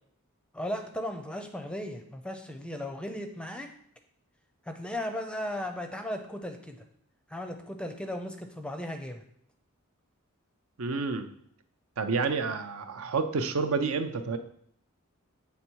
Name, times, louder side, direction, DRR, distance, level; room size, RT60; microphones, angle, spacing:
voice 1, 0.5-3.7 4.6-6.8 7.3-9.2, left 1 dB, 5° left, 6 dB, 0.5 m, -36 dB
voice 2, 10.8-11.3 12.0-14.4, right 4 dB, 70° right, 8 dB, 0.5 m, -29 dB
8.2 x 3.5 x 4.5 m, 0.67 s
head